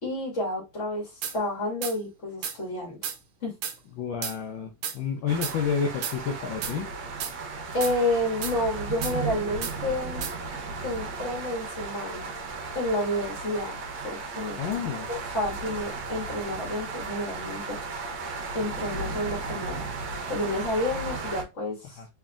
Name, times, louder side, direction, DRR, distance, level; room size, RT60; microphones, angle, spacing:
voice 1, 0.0-3.0 3.4-3.5 7.7-10.3 10.8-12.3 12.8-14.6 15.1-17.8 18.5-19.9 20.3-22.0, left 1 dB, 40° left, 2.0 m, -30 dB
sound 1, 1.2-1.4 1.8-2.0 2.4-2.6 3.0-3.2 3.6-3.8 4.2-4.4 4.8-5.0 5.4-5.6 6.0-6.2 6.6-6.8 7.2-7.3 7.8-7.9 8.4-8.6 9.0-9.2 9.6-9.8 10.2-10.3, right 8 dB, 90° right, 1.5 m, -32 dB
voice 2, 4.0-6.9 14.6-15.1 22.0-22.1, left 6 dB, 75° left, 1.4 m, -30 dB
sound 2, 5.3-21.4, right 4 dB, 70° right, 1.7 m, -35 dB
4.0 x 3.5 x 2.4 m
omnidirectional pair, 2.2 m